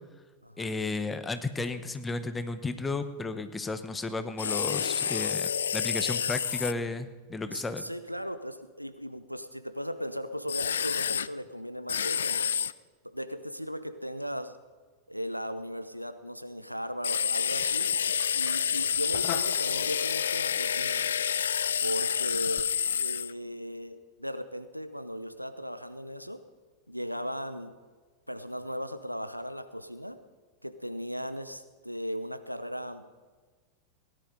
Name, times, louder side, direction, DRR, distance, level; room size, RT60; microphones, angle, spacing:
voice 1, 0.6-7.8, left 3 dB, 15° left, 11 dB, 1.0 m, -33 dB
sound 1, 4.4-6.7 10.5-11.3 11.9-12.7 17.0-23.3, left 8 dB, 65° left, 0.3 m, -29 dB
voice 2, 7.5-12.5 13.0-14.6 15.1-18.0 18.3-21.0 21.8-22.7 22.9-26.4 26.9-27.7 28.3-30.2 30.6-33.0, equal, 90° right, 10 dB, 0.8 m, -37 dB
sound 2, 17.6-22.6, left 11 dB, 40° left, 0.8 m, -45 dB
17.5 x 10.5 x 5.2 m, 1.4 s
figure-of-eight pair, 90°, 0 cm